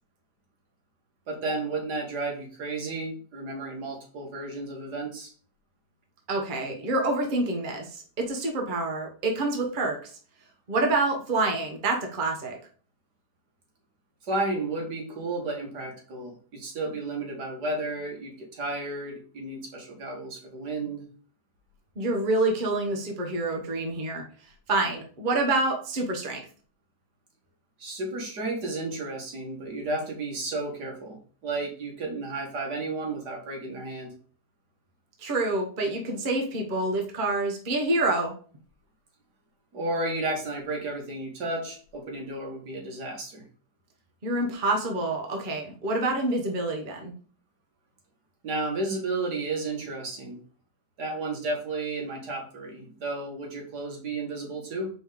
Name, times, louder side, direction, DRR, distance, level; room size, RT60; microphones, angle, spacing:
voice 1, 1.3-5.3 14.3-21.1 27.8-34.1 39.7-43.4 48.4-50.4 51.0-54.9, right 2 dB, 75° right, 0 dB, 2.2 m, -32 dB
voice 2, 6.3-10.1 10.7-12.6 22.0-24.2 24.7-26.4 35.2-38.3 44.2-47.1, right 2 dB, 30° right, 1 dB, 1.2 m, -27 dB
5.3 x 3.6 x 5.0 m, 0.42 s
omnidirectional pair, 1.8 m